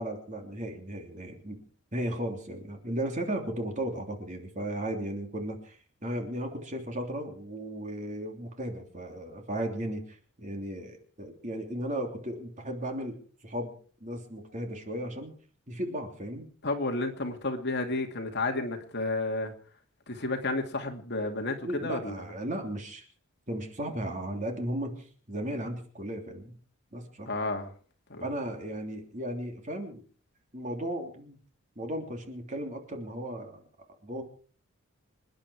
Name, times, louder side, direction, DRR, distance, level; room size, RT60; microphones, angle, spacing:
voice 1, 0.0-1.6 1.9-13.2 13.4-13.7 14.0-15.3 15.7-16.5 21.6-23.0 23.5-26.5 26.9-27.3 28.2-30.0 30.5-31.4 31.7-33.6 34.0-34.2, right 1 dB, 35° right, 3.2 m, -35 dB
voice 2, 16.6-19.5 20.1-22.1 27.3-27.7 28.1-28.3, left 2 dB, 50° left, 2.5 m, -31 dB
27.0 x 10.5 x 4.8 m
head